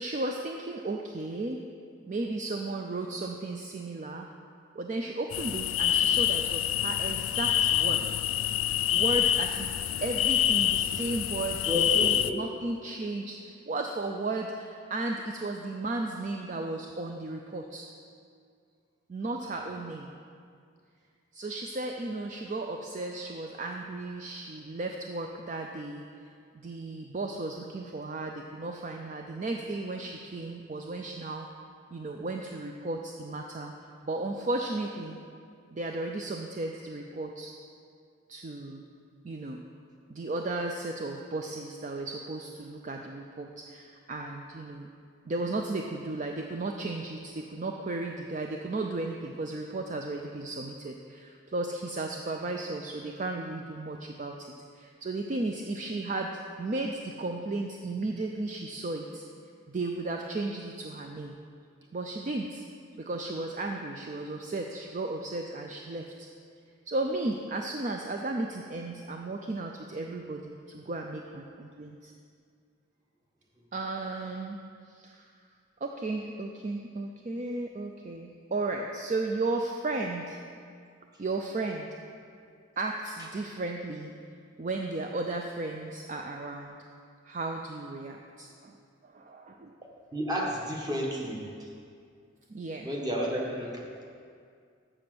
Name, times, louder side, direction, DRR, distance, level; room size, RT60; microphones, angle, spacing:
voice 1, 0.0-1.6 2.0-4.3 4.7-8.2 8.9-9.7 10.0-17.9 19.1-20.1 21.3-31.5 31.9-33.7 34.0-35.2 35.7-37.5 38.3-38.8 39.2-39.6 40.1-44.9 45.3-54.5 54.7-56.3 56.6-59.2 59.7-61.3 61.9-62.6 63.0-66.3 66.9-72.1 73.7-74.6 74.9-75.3 75.8-80.4 81.2-81.9 82.8-84.1 84.6-86.8 87.3-88.8 89.0-89.7 92.5-92.9, right 2 dB, 35° right, 3 dB, 0.4 m, -34 dB
sound 1, 5.3-12.3, left 11 dB, 75° left, 0.3 m, -26 dB
voice 2, 11.7-12.4 90.1-91.5 92.8-93.7, equal, 20° right, -1 dB, 1.1 m, -31 dB
7.5 x 7.0 x 6.0 m, 2.3 s
head